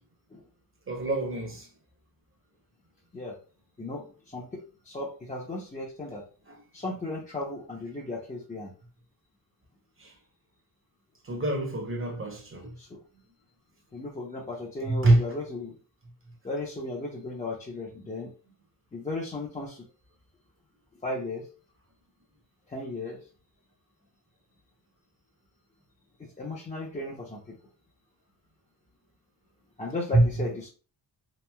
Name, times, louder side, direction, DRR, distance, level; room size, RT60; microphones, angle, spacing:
voice 1, 0.9-1.7 6.5-6.6 10.0-10.1 11.2-12.7 14.8-15.2 30.1-30.2, right 2 dB, 30° right, 0.8 m, -25 dB
voice 2, 3.8-6.2 6.7-8.7 12.8-13.0 13.9-15.8 16.4-18.3 18.9-19.8 21.0-21.5 22.7-23.2 26.2-27.6 29.8-30.7, left 2 dB, 20° left, 0.6 m, -35 dB
3.0 x 2.6 x 2.2 m
wide cardioid pair, 105°, 42 cm